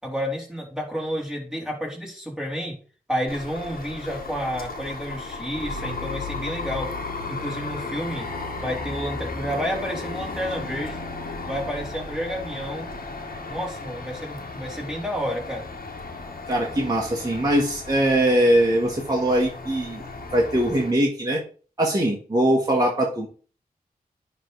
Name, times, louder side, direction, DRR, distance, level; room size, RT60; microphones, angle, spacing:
voice 1, 0.0-2.8 3.1-6.9 7.3-8.3 8.6-11.1 11.5-12.9 13.5-15.6, equal, 5° right, -2 dB, 3.5 m, -30 dB
sound 1, 3.3-20.9, left 3 dB, 70° left, 1.5 m, -35 dB
voice 2, 16.5-20.0 20.3-21.4 21.8-23.3, right 1 dB, 25° right, -2 dB, 1.7 m, -21 dB
10.0 x 3.5 x 4.1 m, 0.40 s
cardioid pair, 50°, 15 cm